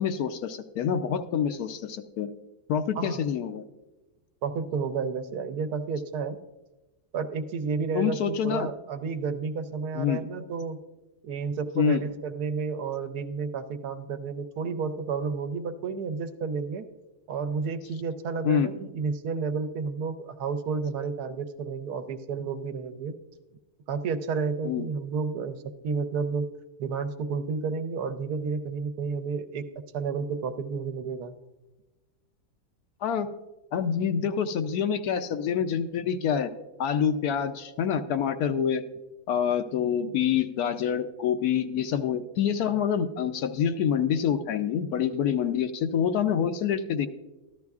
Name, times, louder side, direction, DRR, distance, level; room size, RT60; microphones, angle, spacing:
voice 1, 0.0-2.3 2.7-3.6 7.9-8.7 9.9-10.2 11.8-12.0 18.4-18.7 24.6-24.9 33.0-33.3 33.7-36.5 36.8-38.8 39.3-47.1, left 8 dB, 75° left, 9 dB, 1.1 m, -26 dB
voice 2, 3.0-3.3 4.4-6.4 7.1-10.8 11.2-16.8 17.3-23.1 23.9-26.5 26.8-29.7 29.9-31.3, right 5 dB, 80° right, 9 dB, 1.2 m, -31 dB
14.0 x 12.0 x 2.4 m, 1.1 s
omnidirectional pair, 1.7 m